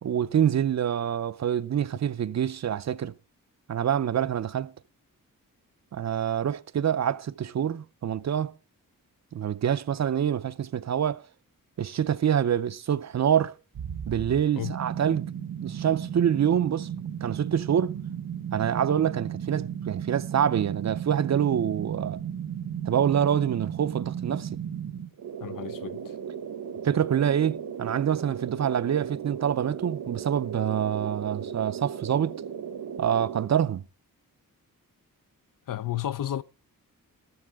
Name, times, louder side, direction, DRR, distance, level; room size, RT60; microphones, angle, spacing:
voice 1, 0.0-3.1 3.7-4.7 5.9-8.5 9.3-11.2 11.8-13.5 14.1-15.3 15.6-16.9 17.2-18.0 18.5-22.2 22.9-24.6 26.8-32.4 33.0-33.8, right 9 dB, 50° right, 0.5 m, -26 dB
sound 1, 13.8-33.5, right 8 dB, 90° right, 1.3 m, -35 dB
voice 2, 25.4-26.1 35.7-36.4, left 12 dB, 65° left, 0.6 m, -32 dB
14.0 x 13.0 x 3.5 m
wide cardioid pair, 175°, 35 cm